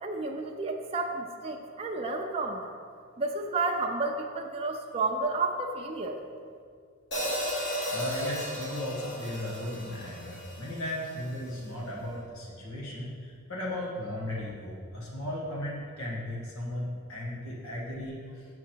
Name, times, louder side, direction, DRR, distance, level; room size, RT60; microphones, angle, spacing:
voice 1, 0.0-2.7 3.2-6.2, right 3 dB, 25° right, 1 dB, 0.5 m, -31 dB
Hi-hat, 7.1-11.3, equal, 55° left, 1.4 m, -35 dB
voice 2, 7.9-18.2, left 1 dB, 75° left, -4 dB, 1.5 m, -36 dB
6.4 x 6.0 x 4.5 m, 2.2 s
head